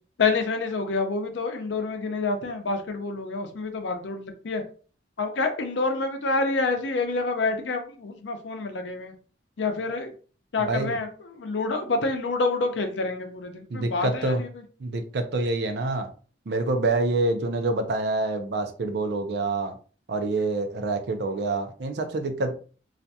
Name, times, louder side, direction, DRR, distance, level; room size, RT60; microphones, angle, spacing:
voice 1, 0.2-4.6 5.2-9.1 9.6-10.1 10.5-11.1 11.4-14.5, left 3 dB, 80° left, 5 dB, 0.5 m, -27 dB
voice 2, 10.6-11.0 13.7-14.4 14.8-16.1 16.5-19.8 20.1-22.5, right 2 dB, 65° right, 7 dB, 0.4 m, -26 dB
2.4 x 2.2 x 2.7 m, 0.39 s
head